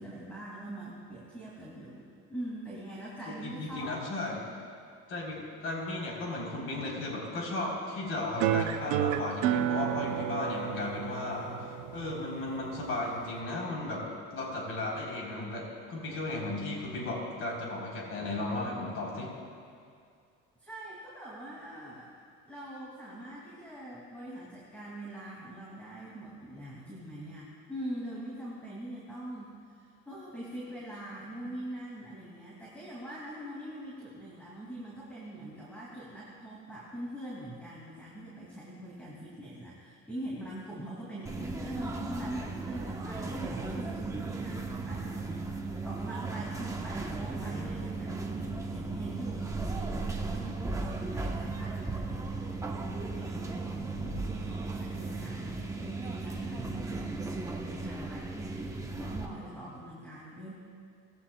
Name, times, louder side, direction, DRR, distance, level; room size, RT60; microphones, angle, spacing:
voice 1, 0.0-3.9 20.6-22.1 22.5-52.4 52.8-60.5, right 1 dB, 5° left, -7 dB, 2.5 m, -43 dB
voice 2, 3.3-4.4 5.1-14.1 14.3-19.3, left 2 dB, 50° left, -3 dB, 3.9 m, -35 dB
sound 1, 8.4-13.4, right 10 dB, 85° right, 0.8 m, -32 dB
sound 2, 41.3-59.3, right 3 dB, 10° right, 1.0 m, -36 dB
19.5 x 15.0 x 2.3 m, 2.3 s
cardioid pair, 135°, 29 cm